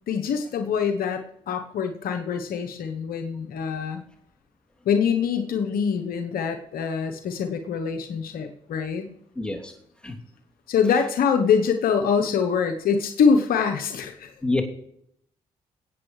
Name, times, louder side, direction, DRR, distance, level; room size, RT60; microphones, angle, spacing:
voice 1, 0.1-4.0 4.9-9.1 10.7-14.3, left 6 dB, 70° left, 6 dB, 0.9 m, -24 dB
voice 2, 9.4-9.7 10.0-10.2 14.4-14.6, left 2 dB, 5° left, -1 dB, 2.8 m, -26 dB
22.5 x 8.6 x 3.2 m, 0.75 s
supercardioid pair, 50°, 16 cm